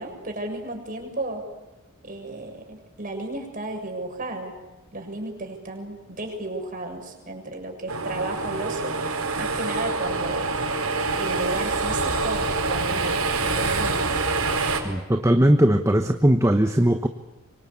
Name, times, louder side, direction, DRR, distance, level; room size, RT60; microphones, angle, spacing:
voice 1, 0.0-1.4 2.0-4.5 4.9-9.0 9.4-10.5 10.8-14.2, right 2 dB, 40° right, 3 dB, 6.8 m, -33 dB
sound 1, 7.9-14.8, right 3 dB, 80° right, 4.8 m, -26 dB
voice 2, 14.8-17.1, right 1 dB, 15° right, 7 dB, 1.1 m, -19 dB
26.0 x 24.0 x 8.4 m, 1.1 s
head